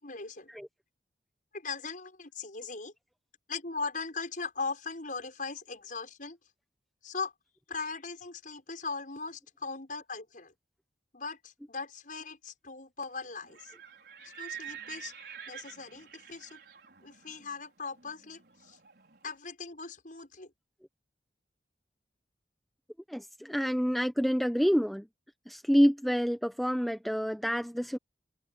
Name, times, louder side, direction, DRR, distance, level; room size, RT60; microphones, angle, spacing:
voice 1, 0.0-0.5 1.5-2.9 3.5-6.4 7.0-7.3 7.7-10.5 11.1-13.7 14.2-15.1 15.5-16.6 17.0-18.8 19.2-20.5, left 4 dB, 50° left, 6.8 m, -39 dB
Livestock farm animals working animals, 13.4-19.2, right 9 dB, 65° right, 5.5 m, -47 dB
voice 2, 23.1-25.1 25.5-28.0, equal, ahead, 1.1 m, -27 dB
head